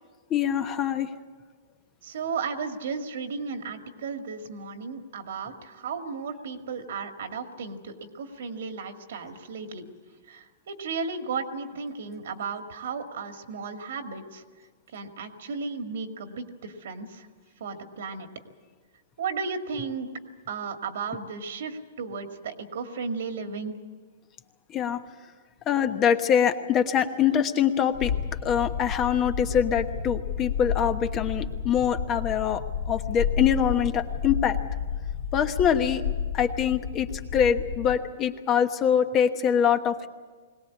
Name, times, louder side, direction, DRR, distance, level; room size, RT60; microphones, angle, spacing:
voice 1, 0.3-1.1 24.7-25.0 25.7-28.1 28.4-34.6 35.3-36.0 36.3-40.1, left 8 dB, 25° left, 8 dB, 1.2 m, -24 dB
voice 2, 2.0-9.8 10.3-14.4 14.9-17.3 17.6-18.3 19.2-20.1 20.5-23.8, right 5 dB, 70° right, 6 dB, 2.2 m, -34 dB
sound 1, 27.9-38.0, left 7 dB, 70° left, 3.1 m, -31 dB
21.5 x 18.5 x 8.5 m, 1.5 s
hypercardioid pair, 145°, 0 cm